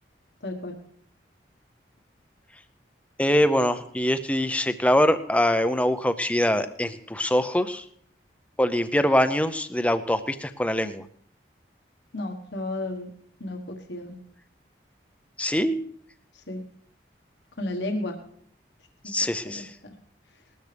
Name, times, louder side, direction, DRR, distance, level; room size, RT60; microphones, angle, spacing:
voice 1, 0.4-0.7 12.1-13.1 13.4-14.1 16.3-16.6 17.6-18.2 19.0-19.1 19.4-19.6, left 1 dB, 80° left, 3 dB, 1.4 m, -32 dB
voice 2, 3.2-7.8 8.6-11.0 15.4-15.8 19.1-19.7, left 1 dB, 5° left, 10 dB, 0.6 m, -23 dB
19.5 x 13.0 x 3.4 m, 0.65 s
head